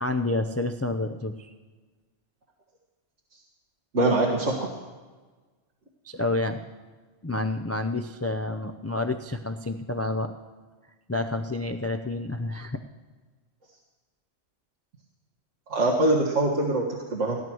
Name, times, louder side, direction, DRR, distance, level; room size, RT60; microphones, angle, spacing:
voice 1, 0.0-1.5 6.0-6.6 7.2-10.3 11.1-12.8, left 2 dB, 20° left, 6 dB, 0.3 m, -29 dB
voice 2, 3.9-4.7 15.7-17.4, right 2 dB, 75° right, -3 dB, 2.0 m, -23 dB
17.0 x 10.5 x 6.2 m, 1.4 s
omnidirectional pair, 1.3 m